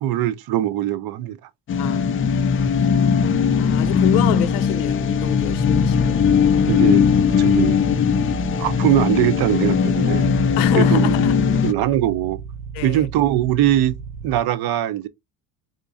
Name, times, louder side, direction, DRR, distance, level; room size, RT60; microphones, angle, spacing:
voice 1, 0.0-1.4 6.7-7.1 7.4-7.8 8.6-10.3 10.7-12.4 12.8-14.0 14.2-15.1, right 12 dB, 60° right, 0.5 m, -21 dB
sound 1, 1.7-11.7, left 6 dB, 30° left, 0.4 m, -19 dB
sound 2, 2.5-14.4, right 5 dB, 85° right, 1.3 m, -35 dB
voice 2, 3.6-6.2 10.6-11.3 12.7-13.1, left 13 dB, 85° left, 0.5 m, -27 dB
3.7 x 2.9 x 2.4 m
supercardioid pair, 80°, 42 cm